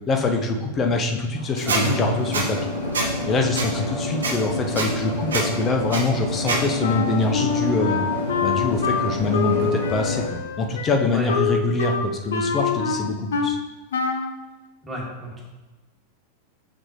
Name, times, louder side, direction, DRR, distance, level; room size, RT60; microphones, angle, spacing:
voice 1, 0.1-2.6 3.3-8.0 8.4-13.6, left 3 dB, 25° left, 3 dB, 0.7 m, -24 dB
sound 1, 1.3-10.2, left 1 dB, 85° left, 1.8 m, -28 dB
Squeak, 1.7-1.8 2.3-2.4 2.9-3.1 3.5-3.7 4.2-4.3 4.7-4.9 5.3-5.4 5.9-6.0 6.5-6.6, right 3 dB, 65° right, 0.9 m, -24 dB
Wind instrument woodwind instrument, 6.8-13.6 13.9-14.4, left 6 dB, 65° left, 0.6 m, -25 dB
voice 2, 14.8-15.4, left 1 dB, 10° right, -4 dB, 2.0 m, -33 dB
6.2 x 6.1 x 3.1 m, 1.1 s
figure-of-eight pair, 90°, 0 cm